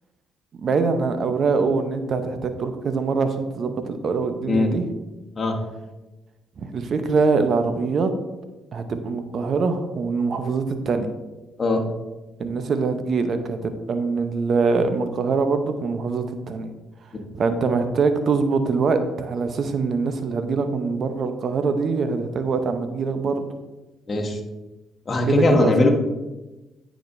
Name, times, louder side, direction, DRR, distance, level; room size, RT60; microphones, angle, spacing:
voice 1, 0.6-4.8 6.6-8.1 8.7-11.1 12.4-16.7 17.3-23.5 25.2-25.7, right 4 dB, 55° right, 8 dB, 0.8 m, -23 dB
voice 2, 24.1-24.4 25.1-25.9, left 2 dB, 35° left, 1 dB, 1.3 m, -20 dB
9.4 x 5.0 x 2.6 m, 1.1 s
supercardioid pair, 65°, 0 cm